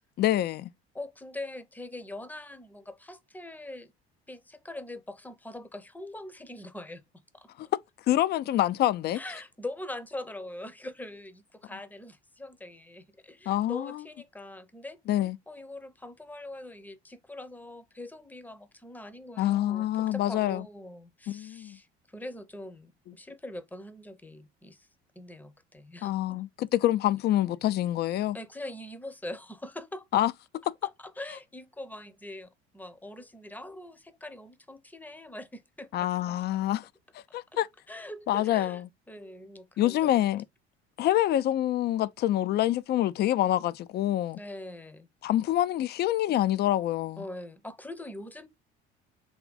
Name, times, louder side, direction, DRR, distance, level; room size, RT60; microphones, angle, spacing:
voice 1, 0.2-0.7 7.6-7.7 8.1-9.2 13.5-14.0 15.1-15.4 19.4-20.6 21.3-21.8 26.0-28.4 30.1-30.3 30.7-30.8 35.9-36.9 37.3-37.7 38.3-38.9 39.8-40.4 41.0-44.4 45.2-47.2, left 13 dB, 30° left, 0.4 m, -26 dB
voice 2, 0.9-3.9 4.3-7.5 9.1-15.0 15.5-24.9 25.2-26.4 28.3-30.1 30.8-36.4 37.9-38.8 39.1-40.3 44.4-45.1 47.2-48.5, left 1 dB, 5° left, 0.7 m, -43 dB
3.7 x 2.2 x 3.9 m
figure-of-eight pair, 60°, 33 cm